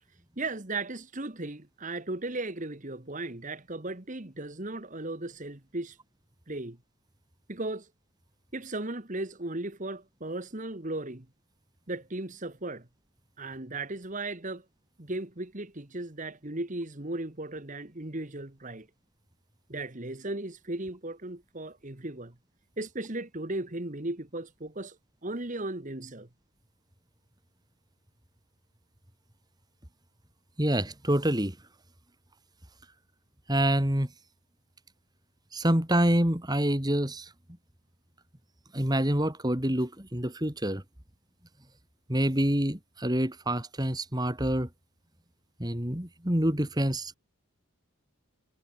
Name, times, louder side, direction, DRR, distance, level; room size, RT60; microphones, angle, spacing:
voice 1, 0.4-6.0 6.5-6.8 7.5-7.9 8.5-11.3 11.9-12.9 13.4-14.6 15.0-18.9 19.7-22.4 22.8-25.0 25.2-26.3, right 2 dB, 35° right, 1.6 m, -36 dB
voice 2, 30.6-31.6 33.5-34.1 35.5-37.3 38.7-40.8 42.1-44.7 45.6-47.2, right 1 dB, 20° right, 2.5 m, -27 dB
head